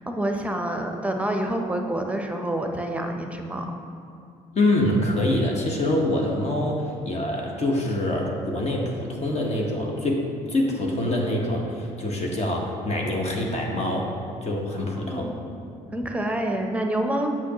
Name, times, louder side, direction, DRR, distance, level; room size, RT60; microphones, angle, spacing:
voice 1, 0.1-3.7 14.8-15.3 15.9-17.4, right 1 dB, 10° right, 3 dB, 0.8 m, -27 dB
voice 2, 4.5-14.1 14.4-15.3, left 1 dB, 40° left, -1 dB, 1.2 m, -25 dB
8.2 x 6.0 x 3.0 m, 2.5 s
hypercardioid pair, 55°, 17 cm